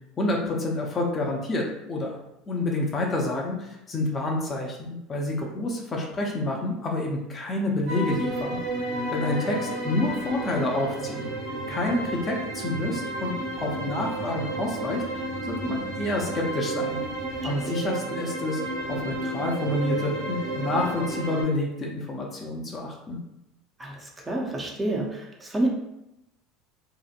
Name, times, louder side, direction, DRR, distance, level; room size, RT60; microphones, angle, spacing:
voice 1, 0.2-2.2 2.5-11.3 11.7-17.0 17.4-18.6 18.9-23.2, left 2 dB, 30° left, 0 dB, 0.5 m, -28 dB
sound 1, 7.9-21.4, right 2 dB, 70° right, 1.1 m, -32 dB
voice 2, 17.3-17.7 23.8-25.7, right 1 dB, 15° right, -1 dB, 0.5 m, -29 dB
2.7 x 2.1 x 2.4 m, 0.87 s
supercardioid pair, 115°, 0 cm